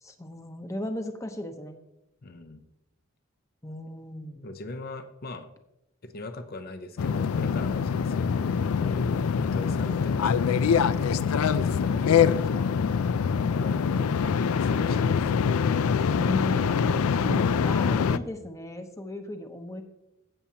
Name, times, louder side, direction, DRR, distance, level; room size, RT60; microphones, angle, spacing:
voice 1, 0.0-1.8 3.6-4.5 16.1-19.8, left 1 dB, 15° left, 6 dB, 0.8 m, -36 dB
voice 2, 2.2-2.6 4.4-5.5 6.0-11.1 11.4-12.9 13.5-14.1 14.6-15.2, left 2 dB, 45° left, 8 dB, 0.6 m, -41 dB
sound 1, 7.0-18.2, left 6 dB, 90° left, 0.4 m, -24 dB
15.5 x 7.1 x 2.9 m, 0.88 s
head